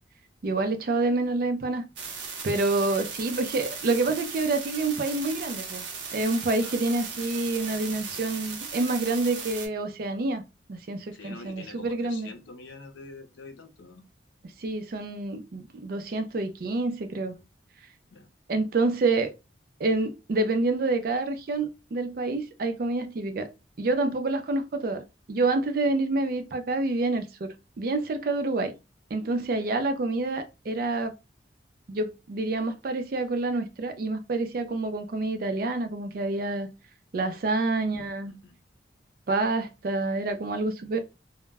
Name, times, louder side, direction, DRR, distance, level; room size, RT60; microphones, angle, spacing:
voice 1, 0.4-1.8 2.4-5.8 6.1-10.4 10.7-12.3 14.6-17.4 18.5-19.3 19.8-23.5 23.8-28.7 29.1-31.1 31.9-36.7 37.1-38.3 39.3-41.0, right 2 dB, 50° right, 0.4 m, -27 dB
sound 1, 2.0-9.7, right 5 dB, 80° right, 0.7 m, -37 dB
voice 2, 11.1-14.0 18.1-18.3 37.8-37.9 38.3-38.6, left 3 dB, 80° left, 0.6 m, -45 dB
2.1 x 2.0 x 3.3 m
head